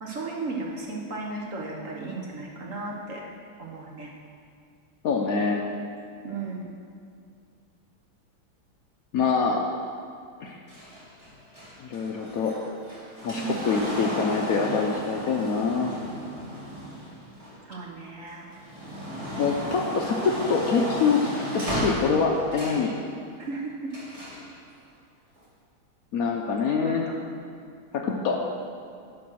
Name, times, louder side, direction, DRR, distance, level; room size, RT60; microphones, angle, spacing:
voice 1, 0.0-3.2 3.6-4.1 6.2-6.7 13.4-13.6 17.7-18.5 23.4-23.9 26.7-27.2 28.0-28.2, right 3 dB, 55° right, -2 dB, 0.9 m, -35 dB
voice 2, 5.0-5.6 9.1-9.6 10.4-10.6 11.8-12.5 13.2-15.9 19.4-21.2 21.5-22.9 26.1-27.0 27.9-28.4, left 5 dB, 85° left, 1 dB, 0.7 m, -25 dB
sound 1, 10.7-17.9 18.4-22.9 23.9-24.5 25.4-25.5, equal, 15° right, 1.7 m, -34 dB
10.0 x 5.0 x 6.2 m, 2.3 s
omnidirectional pair, 2.3 m